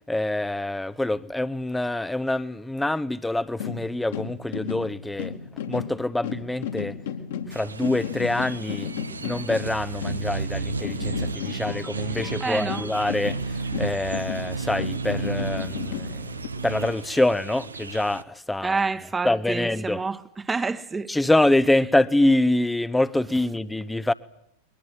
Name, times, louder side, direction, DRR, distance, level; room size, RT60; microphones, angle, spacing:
voice 1, 0.1-5.3 5.7-7.0 7.5-8.9 9.2-16.3 16.6-18.8 19.2-20.0 21.1-24.1, left 1 dB, 5° left, 0.9 m, -25 dB
sound 1, 3.5-10.6 10.8-16.5, left 7 dB, 60° left, 2.6 m, -34 dB
sound 2, 7.5-18.2, right 4 dB, 75° right, 1.0 m, -33 dB
voice 2, 12.4-12.9 18.6-21.1, right 4 dB, 15° right, 1.3 m, -28 dB
22.0 x 22.0 x 9.6 m
figure-of-eight pair, 90°, 0 cm